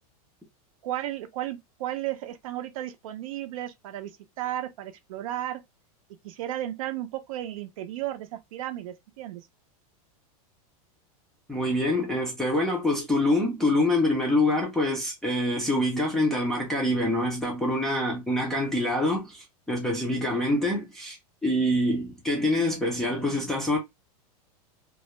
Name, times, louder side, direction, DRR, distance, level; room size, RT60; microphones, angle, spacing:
voice 1, 0.8-4.1 4.4-5.6 6.2-9.5, right 13 dB, 65° right, 0.5 m, -34 dB
voice 2, 11.5-21.2 21.4-23.8, left 1 dB, ahead, 0.4 m, -25 dB
2.3 x 2.1 x 2.9 m
supercardioid pair, 170°, 19 cm